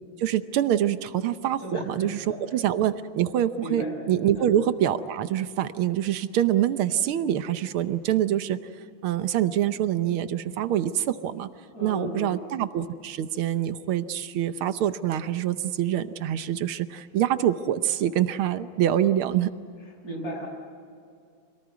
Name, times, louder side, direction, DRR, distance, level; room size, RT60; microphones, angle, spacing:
voice 1, 0.2-8.6 9.0-11.5 11.8-19.5, right 11 dB, 85° right, 12 dB, 1.7 m, -25 dB
voice 2, 1.6-2.4 3.6-3.9 4.3-4.5 11.7-12.3 20.0-20.5, equal, 45° left, 0 dB, 6.4 m, -34 dB
26.0 x 18.5 x 9.6 m, 2.3 s
omnidirectional pair, 2.3 m